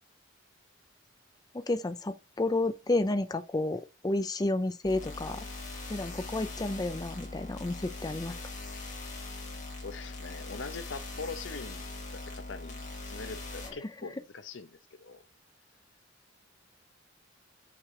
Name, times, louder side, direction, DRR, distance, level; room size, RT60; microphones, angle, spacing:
voice 1, 1.5-5.5 5.9-8.4 13.6-13.9, left 2 dB, 20° left, 0.5 m, -31 dB
sound 1, 4.8-13.7, left 2 dB, 40° left, 2.6 m, -41 dB
voice 2, 9.8-15.2, left 4 dB, 70° left, 0.8 m, -43 dB
5.9 x 5.0 x 4.7 m
head